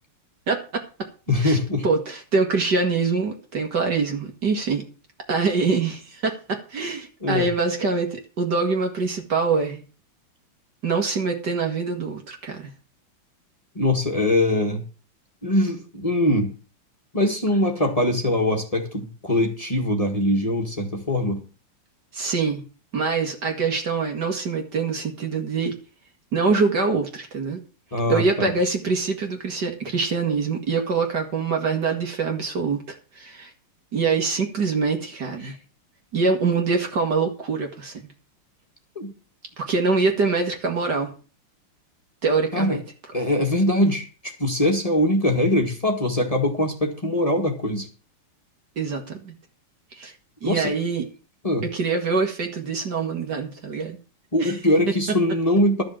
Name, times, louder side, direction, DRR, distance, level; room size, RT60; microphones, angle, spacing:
voice 1, 0.5-0.8 1.4-4.8 5.3-9.8 10.8-12.7 22.1-22.6 22.9-25.8 26.3-27.6 28.1-33.5 33.9-35.5 36.1-38.1 39.6-41.1 42.2-42.8 48.8-49.3 50.0-50.1 50.4-51.0 51.6-54.0 54.4-54.6, right 4 dB, 50° right, 4 dB, 2.3 m, -24 dB
voice 2, 1.3-1.9 7.2-7.5 13.8-14.8 15.4-16.5 17.1-21.4 27.9-28.5 39.0-39.1 42.5-42.8 43.1-47.9 50.4-50.7 51.4-51.6 54.3-55.8, left 1 dB, 15° left, 3 dB, 1.9 m, -22 dB
12.5 x 6.5 x 7.6 m, 0.35 s
omnidirectional pair, 2.4 m